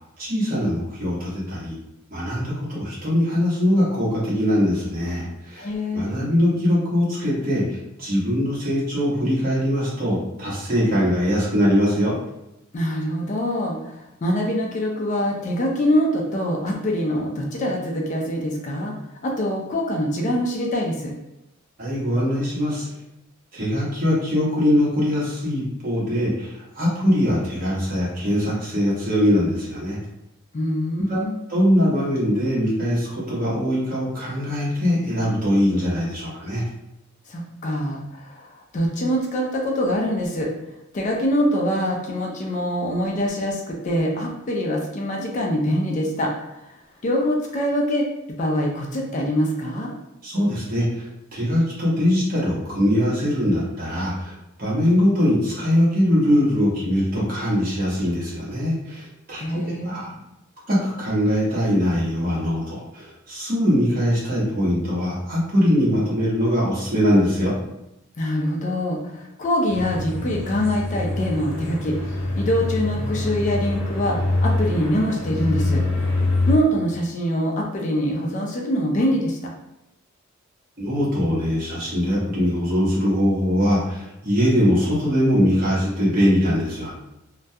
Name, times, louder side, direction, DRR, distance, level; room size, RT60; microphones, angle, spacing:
voice 1, 0.2-1.7 2.1-7.6 8.0-12.1 21.8-22.9 23.5-30.0 31.1-31.2 31.5-36.6 50.2-51.0 51.3-60.2 60.7-67.5 80.8-86.9, equal, 45° right, -6 dB, 0.8 m, -22 dB
voice 2, 5.6-6.3 12.7-18.9 19.2-21.1 30.5-31.4 37.3-40.5 40.9-46.3 47.0-48.1 48.4-49.9 59.4-60.0 68.2-72.0 72.4-75.8 76.5-79.4, equal, 35° left, -1 dB, 0.3 m, -24 dB
sound 1, 69.7-76.5, left 2 dB, 70° left, 0.7 m, -25 dB
2.2 x 2.2 x 2.6 m, 0.89 s
head